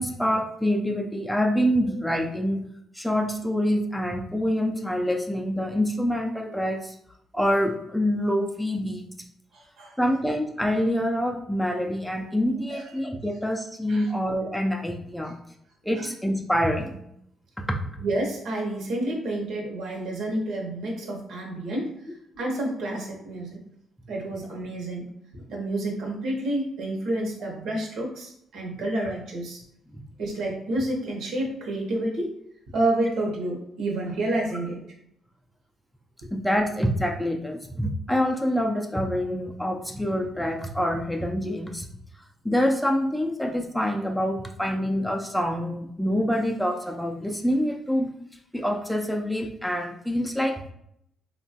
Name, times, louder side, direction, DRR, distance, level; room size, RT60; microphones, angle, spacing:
voice 1, 0.0-2.7 2.9-7.0 7.3-9.1 10.0-15.4 15.8-17.0 17.7-17.8 29.9-30.0 36.3-41.9 42.4-48.1 48.5-50.7, equal, 5° left, 1 dB, 0.4 m, -26 dB
voice 2, 9.5-10.0 12.7-12.9 13.9-14.1 15.9-16.1 18.0-23.6 24.1-25.1 25.3-29.6 30.2-32.3 32.7-34.8, right 1 dB, 75° right, -1 dB, 0.8 m, -29 dB
3.0 x 2.2 x 2.7 m, 0.75 s
cardioid pair, 90°, 0 cm